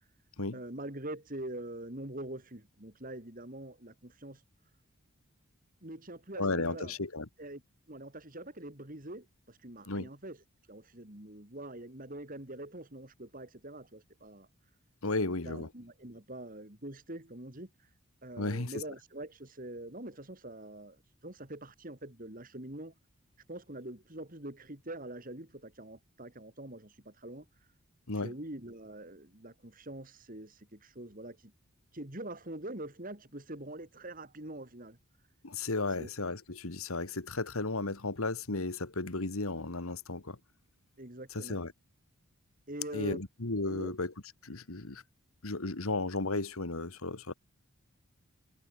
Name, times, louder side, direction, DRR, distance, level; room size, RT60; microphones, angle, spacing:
voice 1, 0.5-4.4 5.8-6.9 7.4-7.6 7.9-10.4 10.7-14.5 15.2-17.7 18.2-21.0 21.2-22.9 23.5-27.4 28.2-31.5 31.9-35.0 36.0-36.1 41.0-41.6 42.7-43.2 43.7-43.9, right 1 dB, 40° right, 2.9 m, -44 dB
voice 2, 6.4-7.3 9.9-10.1 15.0-15.7 18.4-18.8 28.1-28.3 35.4-40.4 41.3-41.7 42.9-44.1 44.4-45.0 45.4-47.3, left 3 dB, 80° left, 1.9 m, -34 dB
head